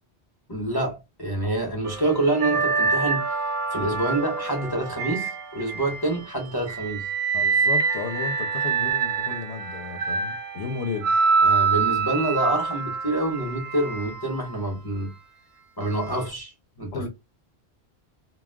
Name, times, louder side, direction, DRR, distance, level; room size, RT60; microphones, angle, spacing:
voice 1, 0.5-3.2 3.7-7.0 11.4-15.1 15.8-17.0, right 2 dB, 25° left, 0.8 m, -27 dB
sound 1, 1.8-6.2 6.7-14.8 15.8-16.0, right 5 dB, 55° right, 0.6 m, -26 dB
voice 2, 7.3-11.1 16.9-17.1, left 5 dB, 85° left, 0.9 m, -33 dB
2.3 x 2.3 x 3.4 m
omnidirectional pair, 1.1 m